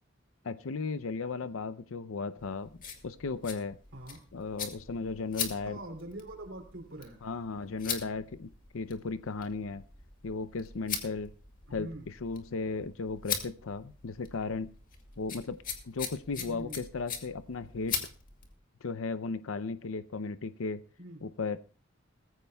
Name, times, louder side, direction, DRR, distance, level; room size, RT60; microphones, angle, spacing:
voice 1, 0.4-2.7 3.0-3.8 4.3-5.8 7.2-9.8 10.2-11.3 11.7-14.7 15.2-15.6 15.8-18.1 18.8-20.8 21.2-21.6, left 4 dB, 85° left, 12 dB, 0.6 m, -35 dB
sound 1, 2.4-18.5, left 7 dB, 45° left, 2.2 m, -41 dB
voice 2, 5.3-7.2 11.7-12.1 16.4-16.8 21.0-21.3, right 1 dB, 75° right, 3 dB, 3.0 m, -44 dB
20.0 x 14.5 x 2.3 m, 0.37 s
head